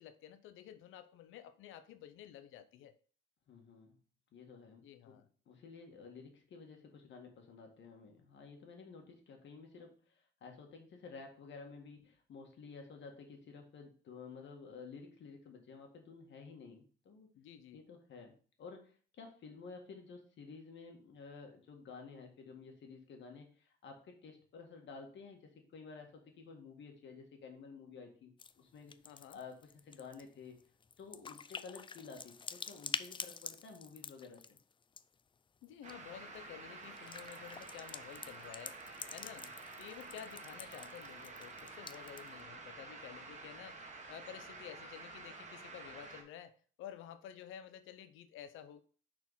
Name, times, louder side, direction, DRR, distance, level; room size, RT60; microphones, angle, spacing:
voice 1, 0.0-2.9 4.8-5.3 17.3-17.8 29.0-29.4 35.6-39.5 39.8-48.8, left 10 dB, 85° left, 0.6 m, -52 dB
voice 2, 3.5-4.0 4.3-5.2 5.5-17.3 17.7-29.0 29.3-30.5 31.0-34.6 39.2-39.5, left 4 dB, 65° left, 1.8 m, -52 dB
sound 1, 28.4-28.5 28.8-35.2 35.6-35.9 36.8-42.4, left 6 dB, 25° left, 0.4 m, -47 dB
sound 2, 35.8-46.2, right 3 dB, 35° right, 1.7 m, -50 dB
6.1 x 4.4 x 5.5 m
cardioid pair, 90°, 20 cm